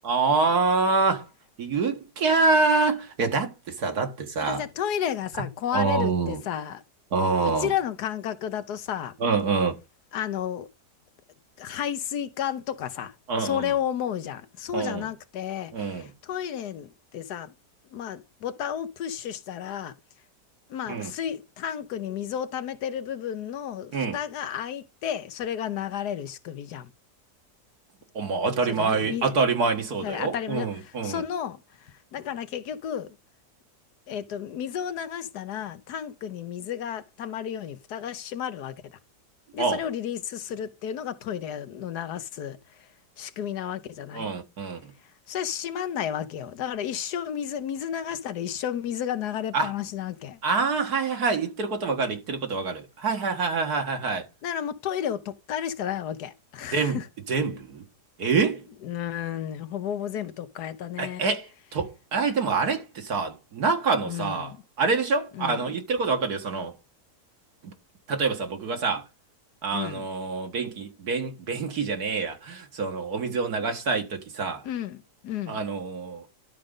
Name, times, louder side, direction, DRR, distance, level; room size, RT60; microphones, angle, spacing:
voice 1, 0.0-1.3 1.6-4.6 5.7-6.4 7.1-7.7 9.2-9.7 13.3-13.7 14.7-15.1 15.7-16.1 20.9-21.1 23.9-24.2 28.1-31.2 39.6-39.9 44.1-44.8 49.5-49.7 50.4-54.3 56.7-57.0 57.3-57.8 58.2-58.7 61.0-66.7 67.6-67.7 68.1-69.0 69.6-74.6 75.5-76.4, right 4 dB, 70° right, 2.1 m, -26 dB
voice 2, 4.4-6.8 7.4-9.1 10.1-10.7 11.6-13.1 13.4-17.5 17.9-19.9 20.7-26.9 28.7-29.3 30.0-33.2 34.1-39.0 39.5-42.8 43.2-44.3 45.3-50.4 54.4-57.0 58.8-61.3 64.0-64.6 65.4-65.8 69.7-70.1 74.6-75.6, left 9 dB, 80° left, 1.4 m, -32 dB
12.0 x 5.1 x 3.7 m
omnidirectional pair, 1.7 m